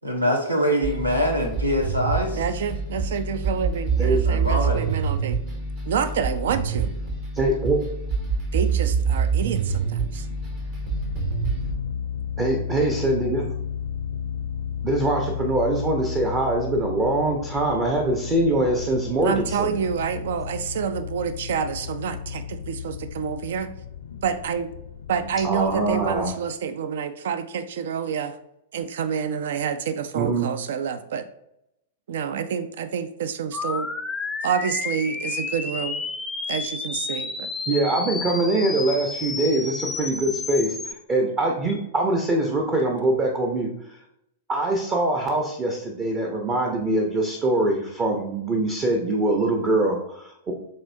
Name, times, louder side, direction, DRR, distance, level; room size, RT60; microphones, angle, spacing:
voice 1, 0.0-2.4 4.2-4.8, equal, 85° right, 2 dB, 1.0 m, -23 dB
sound 1, 0.8-11.7, right 5 dB, 40° right, 1.0 m, -26 dB
voice 2, 2.3-5.4 5.9-6.9 8.5-10.3 19.2-23.7 24.2-24.7 25.1-28.3 28.7-31.2 32.1-33.9 34.4-36.0 36.5-37.5, right 7 dB, 60° right, 12 dB, 0.4 m, -28 dB
voice 3, 7.3-7.8 12.4-13.4 14.8-19.8 25.4-26.3 30.1-30.5 37.7-44.0 44.5-50.5, right 2 dB, 25° right, 1 dB, 0.7 m, -23 dB
sound 2, 10.2-26.3, left 7 dB, 70° left, 0.5 m, -33 dB
sound 3, 33.5-40.9, left 4 dB, 10° left, 0.4 m, -31 dB
7.4 x 2.6 x 2.7 m, 0.80 s
figure-of-eight pair, 95°, 0 cm